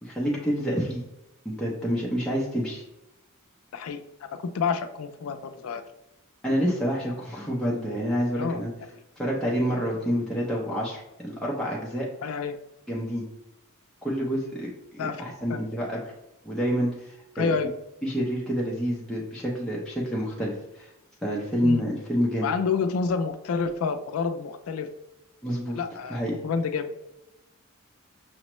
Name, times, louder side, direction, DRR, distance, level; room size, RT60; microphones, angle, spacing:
voice 1, 0.0-1.0 1.4-2.8 6.4-8.7 9.2-12.1 12.9-13.3 14.0-16.1 16.4-17.5 18.0-20.9 21.2-22.5 25.4-25.8 26.1-26.3, equal, 5° left, -5 dB, 0.6 m, -28 dB
voice 2, 3.7-5.8 8.4-8.6 8.9-9.0 12.2-12.6 15.0-15.2 15.5-15.6 17.4-17.7 21.6-21.8 22.4-24.9 25.7-26.9, left 5 dB, 80° left, 9 dB, 0.4 m, -29 dB
5.9 x 2.1 x 3.0 m, 0.92 s
head